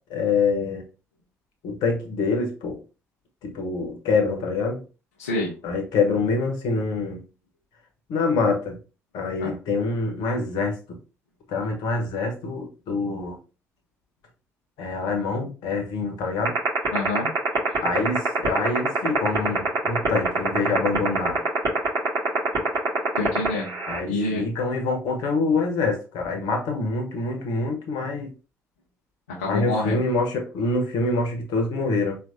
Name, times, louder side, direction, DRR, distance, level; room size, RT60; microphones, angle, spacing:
voice 1, 0.1-0.8 1.6-2.8 3.4-4.8 5.6-7.2 8.1-8.8 9.1-11.0 11.5-13.3 14.8-16.6 17.8-21.4 23.9-28.3 29.5-32.2, left 3 dB, 65° left, 2 dB, 1.2 m, -25 dB
voice 2, 5.2-5.5 9.4-9.5 16.9-17.3 23.2-23.7 24.0-24.4 29.3-29.9, left 2 dB, 80° left, -4 dB, 0.8 m, -27 dB
sound 1, 16.5-24.0, right 8 dB, 45° right, 2.3 m, -24 dB
4.7 x 3.1 x 2.7 m, 0.33 s
figure-of-eight pair, 45°, 8 cm